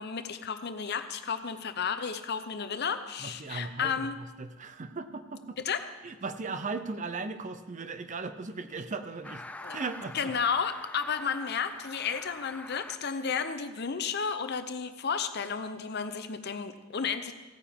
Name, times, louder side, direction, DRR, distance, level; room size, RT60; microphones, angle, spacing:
voice 1, 0.0-4.2 5.6-5.8 9.6-9.8 10.1-17.3, left 6 dB, 55° left, 9 dB, 0.7 m, -32 dB
voice 2, 3.2-5.6 6.0-9.4 9.7-10.3, right 4 dB, 35° right, 10 dB, 0.6 m, -37 dB
sound 1, 9.2-12.9, left 2 dB, 5° left, 0.4 m, -45 dB
16.5 x 9.3 x 3.6 m, 1.2 s
head